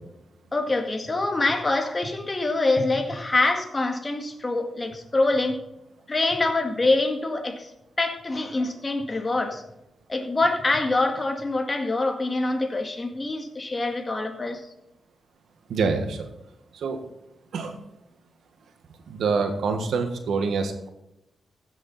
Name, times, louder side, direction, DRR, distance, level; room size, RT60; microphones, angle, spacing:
voice 1, 0.5-5.6 6.1-7.7 8.0-9.6 10.1-14.6, left 2 dB, 35° left, 4 dB, 2.0 m, -25 dB
voice 2, 15.7-16.3 16.7-17.0 17.5-17.8 19.1-20.9, right 4 dB, 80° right, 6 dB, 1.6 m, -26 dB
15.5 x 7.0 x 4.2 m, 0.88 s
cardioid pair, 60°, 0 cm